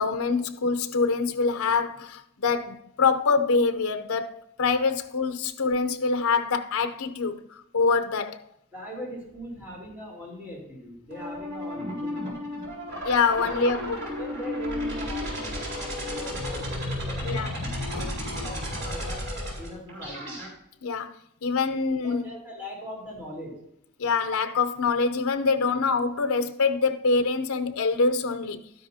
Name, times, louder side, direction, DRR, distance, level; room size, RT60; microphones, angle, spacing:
voice 1, 0.0-8.4 13.0-14.1 17.2-17.5 17.9-18.0 20.8-22.3 24.0-28.7, left 4 dB, 75° left, 0.7 m, -25 dB
voice 2, 8.7-12.5 13.3-13.7 14.1-19.3 19.6-20.4 22.0-23.6, equal, 5° right, 3.8 m, -41 dB
sound 1, 11.1-20.5, left 1 dB, 50° right, 4.2 m, -33 dB
12.0 x 10.5 x 2.8 m
head